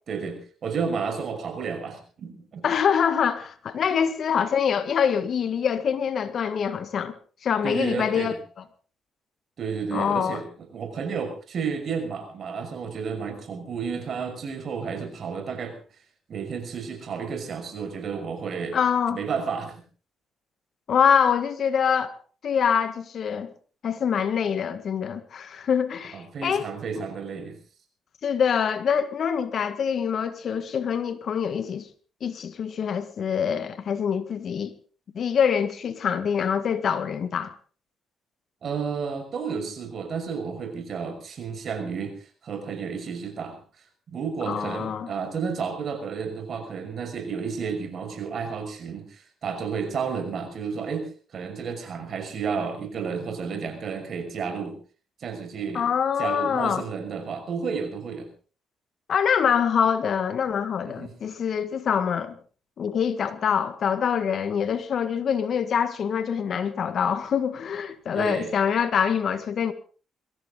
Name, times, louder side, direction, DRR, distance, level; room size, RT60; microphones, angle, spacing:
voice 1, 0.1-2.7 7.6-8.4 9.6-15.8 16.3-18.8 19.1-19.8 26.1-27.6 38.6-43.6 44.1-54.8 55.2-55.9 56.2-58.3 60.8-61.1 68.1-68.5, right 6 dB, 55° right, 5.8 m, -32 dB
voice 2, 2.6-7.1 7.4-8.4 9.9-10.4 18.7-19.2 20.9-22.2 22.4-23.5 23.8-26.7 26.9-27.0 28.2-31.9 32.2-34.7 35.1-37.5 44.5-45.1 55.7-56.8 59.1-62.3 62.8-69.7, left 7 dB, 60° left, 1.7 m, -25 dB
22.5 x 15.5 x 3.9 m
cardioid pair, 90°, 0 cm